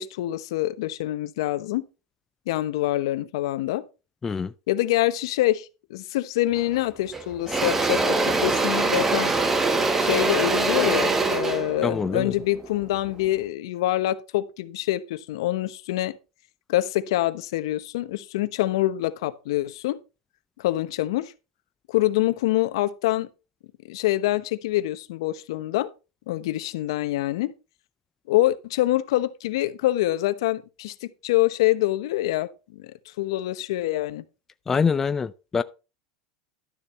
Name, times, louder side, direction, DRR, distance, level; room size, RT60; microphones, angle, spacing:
voice 1, 0.0-1.8 2.5-3.8 4.7-9.3 10.0-16.1 16.7-20.0 20.6-21.3 21.9-23.3 23.9-25.9 26.3-27.5 28.3-32.9 33.2-34.2, left 15 dB, 75° left, 1.0 m, -25 dB
voice 2, 4.2-4.5 11.8-12.3 34.7-35.6, left 5 dB, 15° left, 0.4 m, -24 dB
Engine / Drill, 6.6-6.8 7.1-13.3, right 3 dB, 10° right, 1.1 m, -24 dB
12.0 x 6.9 x 4.4 m
supercardioid pair, 155°, 3 cm